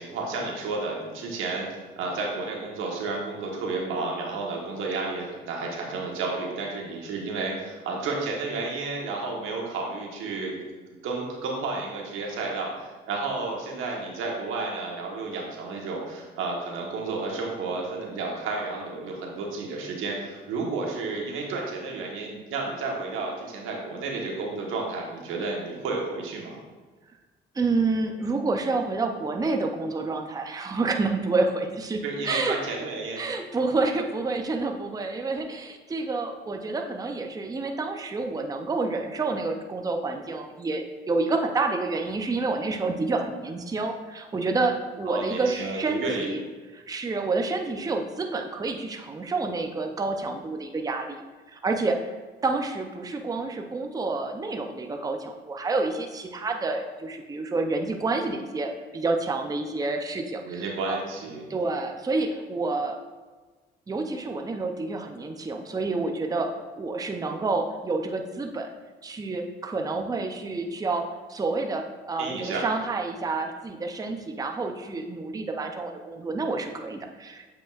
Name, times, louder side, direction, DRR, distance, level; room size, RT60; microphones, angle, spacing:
voice 1, 0.0-10.5 11.0-26.6 32.0-33.2 45.1-46.3 60.4-61.5 72.2-72.6, right 3 dB, 90° right, -1 dB, 1.2 m, -31 dB
voice 2, 27.5-32.6 33.2-46.4 46.7-51.2 51.5-52.1 52.4-61.0 61.5-63.0 63.9-68.7 69.0-77.5, right 3 dB, 20° right, 3 dB, 0.5 m, -29 dB
7.6 x 5.1 x 2.4 m, 1.3 s
cardioid pair, 90°, 20 cm